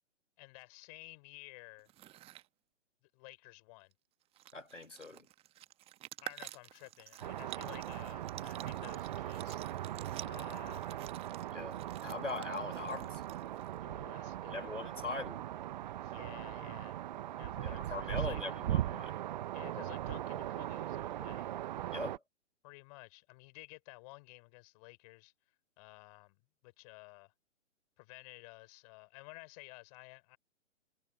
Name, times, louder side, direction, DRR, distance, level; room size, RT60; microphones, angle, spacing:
voice 1, 0.4-1.9 3.1-3.9 6.2-10.0 10.2-11.1 13.8-14.9 16.0-17.0 17.3-18.4 19.5-21.5 22.6-25.3 25.8-26.4 26.6-27.3 28.0-30.4, left 26 dB, 30° left, 5.4 m, -53 dB
sound 1, 1.8-2.5 3.9-4.0 4.2-13.8, right 14 dB, 15° right, 1.4 m, -51 dB
voice 2, 4.5-5.3 11.5-13.2 14.5-15.4 17.6-19.1 21.9-22.2, left 3 dB, 85° left, 2.9 m, -41 dB
sound 2, 7.2-22.2, right 13 dB, 40° right, 1.1 m, -39 dB
figure-of-eight pair, 125°, 36 cm